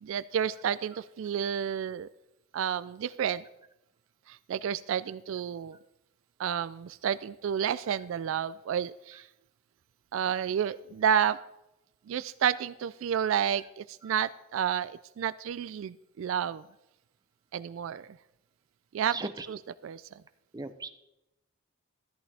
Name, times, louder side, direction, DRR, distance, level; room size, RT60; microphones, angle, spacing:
voice 1, 0.0-2.1 2.5-3.4 4.3-5.8 6.4-9.3 10.1-11.4 12.1-16.6 17.5-18.1 18.9-19.2 19.5-19.6 19.8-20.0, right 8 dB, 70° right, 16 dB, 0.3 m, -30 dB
voice 2, 19.1-19.5 20.5-20.9, right 3 dB, 20° right, 9 dB, 0.6 m, -39 dB
13.0 x 11.5 x 3.4 m, 0.90 s
head